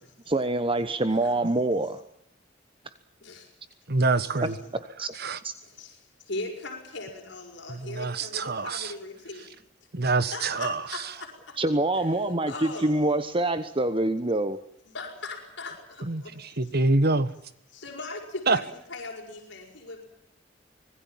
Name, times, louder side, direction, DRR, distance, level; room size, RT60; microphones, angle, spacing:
voice 1, 0.3-2.0 4.4-5.1 5.4-5.5 11.6-14.6, right 2 dB, 30° right, 1.1 m, -26 dB
voice 2, 3.2-3.5 4.3-4.5 5.6-9.6 10.3-11.6 12.0-13.0 14.9-16.7 17.7-20.0, left 3 dB, 65° left, 6.1 m, -40 dB
voice 3, 3.9-4.5 5.2-5.4 7.8-8.9 9.9-10.8 16.1-17.3 18.5-18.6, right 3 dB, 55° right, 1.5 m, -25 dB
25.5 x 20.5 x 7.4 m
head